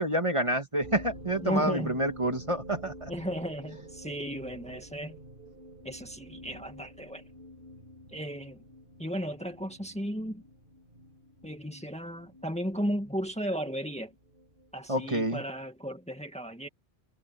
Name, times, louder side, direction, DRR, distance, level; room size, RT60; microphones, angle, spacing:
voice 1, 0.0-3.1 14.9-15.4, right 1 dB, 30° right, 2.1 m, -28 dB
sound 1, 0.8-15.7, equal, 55° right, 4.6 m, -49 dB
voice 2, 1.4-2.0 3.1-5.2 5.8-7.2 8.1-8.6 9.0-10.4 11.4-14.1 14.7-16.7, equal, 5° left, 2.0 m, -35 dB
omnidirectional pair, 1.1 m